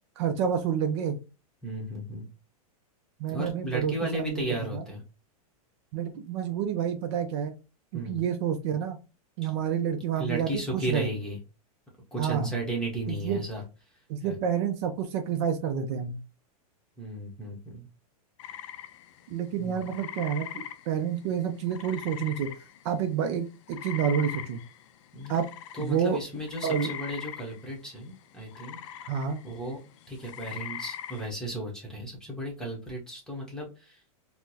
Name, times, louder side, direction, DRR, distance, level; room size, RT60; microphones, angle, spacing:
voice 1, 0.2-1.2 3.2-4.5 4.7-4.8 5.9-7.6 7.9-9.0 9.4-11.1 12.2-12.5 13.1-13.4 14.1-16.2 19.3-22.5 22.8-24.6 25.3-25.5 25.8-26.2 26.6-26.9 29.1-29.4, right 8 dB, 50° right, 6 dB, 0.5 m, -29 dB
voice 2, 1.6-2.3 3.3-5.0 7.9-8.3 9.4-9.5 10.2-11.4 12.1-13.6 14.2-14.4 17.0-17.9 19.6-19.9 25.1-25.3 25.8-28.8 29.4-29.8 30.1-34.0, right 1 dB, 5° left, -2 dB, 1.0 m, -35 dB
sound 1, 18.4-23.1 23.3-31.3, left 10 dB, 55° left, 0.4 m, -42 dB
4.3 x 2.1 x 2.7 m, 0.31 s
supercardioid pair, 145°, 19 cm